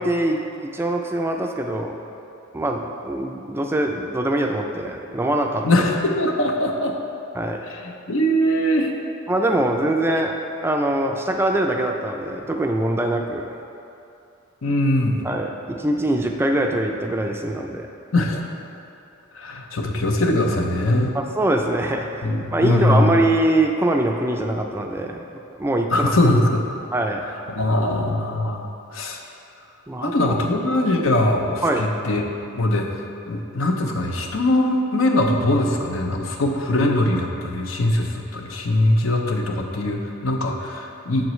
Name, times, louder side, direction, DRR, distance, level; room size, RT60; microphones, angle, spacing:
voice 1, 0.0-1.9 2.5-5.6 7.4-7.6 9.3-13.5 15.2-17.9 21.3-25.2 25.6-26.1 26.9-27.2 29.9-30.4 31.6-31.9, right 1 dB, 10° right, 3 dB, 0.3 m, -23 dB
voice 2, 5.6-6.9 7.7-8.9 14.6-15.2 18.1-18.4 19.3-21.1 22.2-23.2 25.9-26.6 27.6-28.6 28.9-29.2 30.0-32.2 32.5-32.9 33.3-41.3, left 1 dB, 75° left, 2 dB, 0.7 m, -21 dB
7.7 x 7.2 x 3.1 m, 2.7 s
head